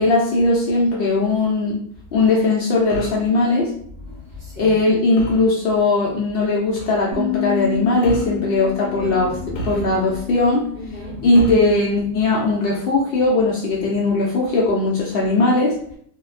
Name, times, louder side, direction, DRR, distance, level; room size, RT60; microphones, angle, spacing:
voice 1, 0.0-1.8 2.1-3.7 4.6-9.4 9.6-10.6 11.2-15.8, left 2 dB, 90° left, 0.5 m, -19 dB
sound 1, 2.9-3.3 5.2-5.5 6.8-7.0 8.0-8.4 9.5-10.2 11.3-11.8, right 4 dB, 70° left, 0.9 m, -31 dB
voice 2, 3.9-4.8 8.9-9.9 10.7-11.4 13.7-13.8, left 1 dB, 35° right, 0.8 m, -34 dB
sound 2, 7.1-12.3, left 12 dB, 80° right, 1.1 m, -30 dB
2.7 x 2.1 x 2.4 m
omnidirectional pair, 1.6 m